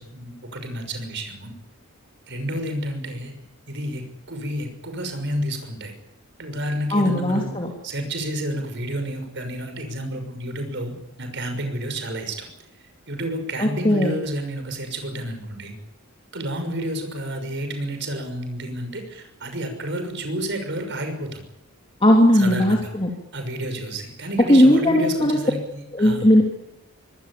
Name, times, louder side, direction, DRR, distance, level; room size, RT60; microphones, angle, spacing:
voice 1, 0.0-1.5 2.3-3.3 3.7-5.9 6.4-7.5 7.8-12.5 13.1-15.7 16.3-21.4 22.3-22.8 23.3-26.4, right 1 dB, 50° right, 7 dB, 6.2 m, -30 dB
voice 2, 6.9-7.7 13.6-14.1 22.0-23.1 24.5-25.4 25.9-26.4, left 1 dB, 25° left, 0 dB, 3.3 m, -17 dB
25.0 x 19.5 x 8.7 m, 0.81 s
head